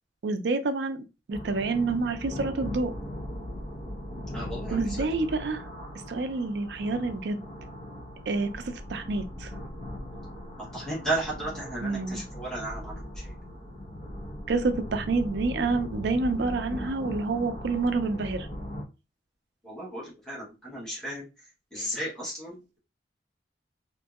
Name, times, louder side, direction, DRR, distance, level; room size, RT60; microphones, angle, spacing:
voice 1, 0.2-1.0 1.3-2.9 4.7-5.6 6.1-7.4 8.3-9.5 11.8-12.2 14.5-18.5, right 3 dB, 65° right, 0.4 m, -28 dB
sound 1, 1.3-18.8, left 1 dB, 35° left, 0.7 m, -39 dB
voice 2, 4.3-5.0 10.6-13.0 19.6-21.3 21.7-22.8, right 1 dB, 5° left, 1.1 m, -34 dB
2.9 x 2.7 x 2.3 m
head